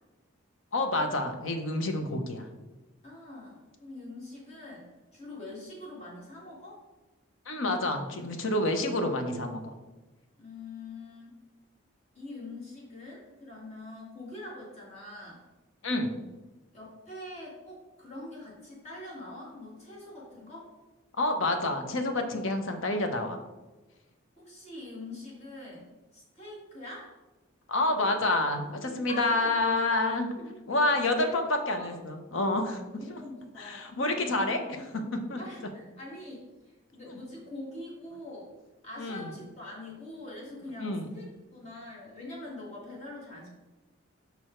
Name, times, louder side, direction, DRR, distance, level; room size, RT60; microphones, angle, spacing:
voice 1, 0.7-2.5 7.5-9.7 15.8-16.2 21.2-23.4 27.7-30.3 30.7-32.8 33.1-33.2 33.6-34.6 35.3-35.4 37.1-37.2 39.0-39.3 40.8-41.1, left 2 dB, 70° left, 5 dB, 0.8 m, -28 dB
voice 2, 3.0-6.8 10.4-11.4 12.1-15.4 16.7-20.7 24.4-27.1 28.8-29.5 30.3-30.6 30.9-31.9 32.9-33.9 34.2-34.9 35.3-38.5 38.8-43.5, left 2 dB, 30° left, -5 dB, 1.9 m, -44 dB
5.3 x 4.7 x 4.4 m, 1.1 s
head